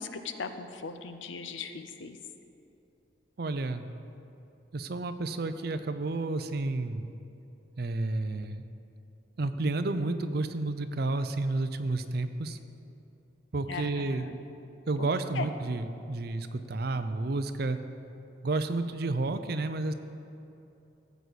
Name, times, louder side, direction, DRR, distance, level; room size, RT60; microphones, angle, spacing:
voice 1, 0.0-2.2 13.7-14.4 15.0-15.1 15.3-15.5, left 5 dB, 90° left, 9 dB, 0.7 m, -38 dB
voice 2, 3.4-3.9 4.7-7.1 7.8-8.6 9.4-12.6 13.5-14.3 14.9-17.8 18.4-19.9, right 2 dB, 55° right, 10 dB, 0.5 m, -31 dB
14.0 x 8.1 x 4.1 m, 2.8 s
head